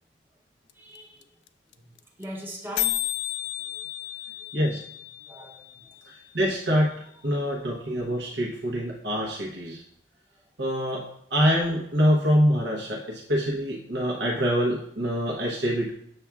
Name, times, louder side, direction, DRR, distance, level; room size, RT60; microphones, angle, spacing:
sound 1, 0.7-0.8 1.0-1.1 1.2-1.5 1.7-1.8 2.0-2.2 2.5-2.6 2.8-6.7, left 16 dB, 90° left, 0.4 m, -33 dB
voice 1, 0.7-1.3 1.7-1.9 2.2-3.1 3.7-3.8 5.3-5.7, equal, 15° right, 0.8 m, -40 dB
voice 2, 6.3-6.9 7.2-9.8 10.6-11.0 11.3-15.9, equal, 75° right, 0.9 m, -25 dB
7.7 x 7.1 x 2.3 m
head